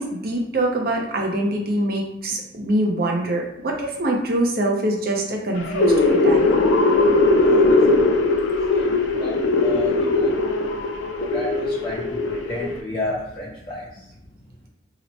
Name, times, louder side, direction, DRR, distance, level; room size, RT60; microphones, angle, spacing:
voice 1, 0.0-6.6, right 1 dB, 55° right, 0 dB, 0.6 m, -24 dB
sound 1, 5.6-12.8, left 2 dB, 90° left, 0.4 m, -19 dB
voice 2, 7.4-8.1 8.7-10.3 11.2-14.1, left 2 dB, 25° left, -6 dB, 0.5 m, -32 dB
2.9 x 2.1 x 3.9 m, 0.81 s
head